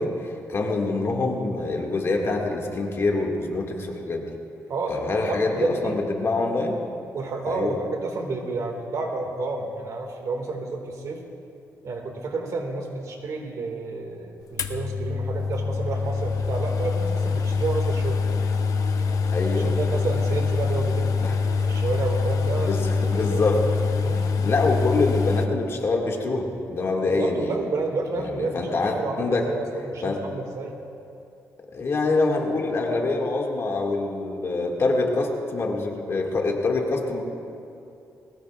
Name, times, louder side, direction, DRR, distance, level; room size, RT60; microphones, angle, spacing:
voice 1, 0.0-4.3 4.9-6.8 7.5-7.8 19.3-19.7 21.2-21.4 22.6-23.7 24.4-27.6 28.2-29.5 30.0-30.2 31.7-37.2, left 3 dB, 45° left, 0 dB, 2.0 m, -25 dB
voice 2, 4.7-6.0 7.1-11.2 11.8-18.2 19.6-23.4 24.0-24.4 27.1-30.8, right 3 dB, 65° right, 3 dB, 2.0 m, -30 dB
sound 1, 14.6-25.5, left 4 dB, 70° left, 0.8 m, -24 dB
20.5 x 19.0 x 2.4 m, 2.6 s
cardioid pair, 105°, 6 cm